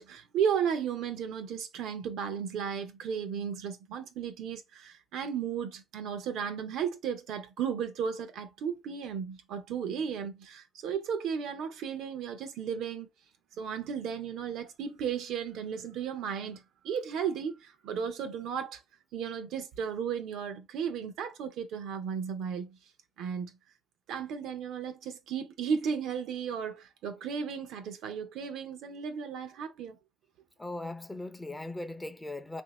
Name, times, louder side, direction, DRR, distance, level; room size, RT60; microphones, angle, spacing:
voice 1, 0.0-13.1 13.6-18.8 19.1-22.8 23.2-23.5 24.1-30.0, right 7 dB, 85° right, 0.6 m, -34 dB
voice 2, 30.6-32.6, left 2 dB, 15° left, 0.5 m, -39 dB
3.5 x 2.6 x 3.0 m
cardioid pair, 90°, 0 cm